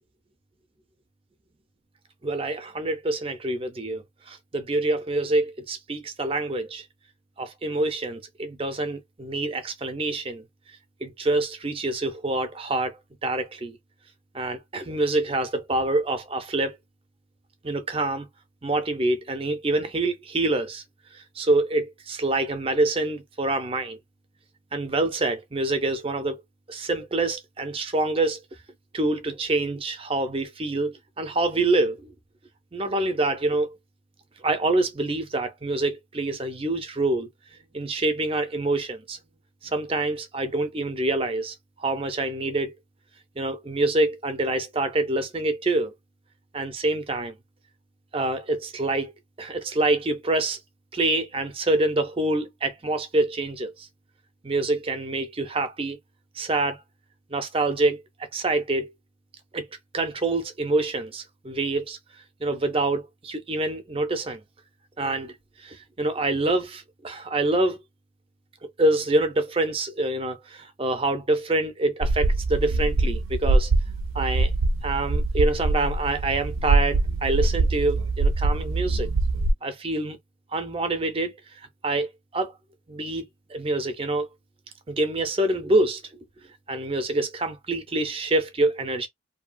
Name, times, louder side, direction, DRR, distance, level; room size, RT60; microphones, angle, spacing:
voice 1, 2.2-6.9 7.4-10.4 11.0-13.0 13.2-13.8 14.3-16.8 17.6-18.3 18.6-20.8 21.1-24.0 24.7-26.4 26.7-28.4 28.9-32.1 32.7-33.8 34.4-37.3 37.7-39.2 39.6-42.7 43.4-45.9 46.5-47.3 48.1-49.1 49.4-50.6 50.9-53.9 54.4-56.0 56.3-56.8 57.3-58.0 58.3-58.9 59.5-59.7 59.9-62.0 62.4-64.4 65.0-65.3 65.6-67.8 68.6-73.7 74.1-74.5 74.8-79.1 79.6-80.2 80.5-81.3 81.8-82.5 82.9-84.3 84.9-86.0 86.7-89.1, right 2 dB, 30° right, 0.5 m, -26 dB
sound 1, 72.0-79.5, right 3 dB, 80° right, 0.4 m, -23 dB
2.7 x 2.3 x 2.5 m
head